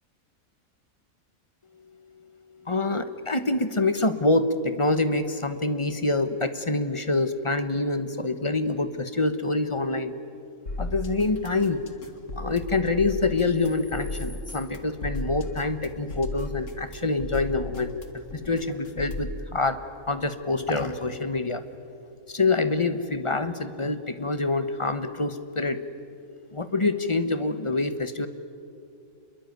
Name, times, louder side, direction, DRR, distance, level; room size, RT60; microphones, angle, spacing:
voice 1, 2.7-10.1 10.8-11.8 12.3-19.8 20.1-21.6 22.3-25.8 26.5-28.3, left 2 dB, 25° left, 10 dB, 1.1 m, -26 dB
sound 1, 10.7-19.4, left 2 dB, 60° left, 2.2 m, -35 dB
27.5 x 22.0 x 9.4 m, 2.6 s
omnidirectional pair, 1.5 m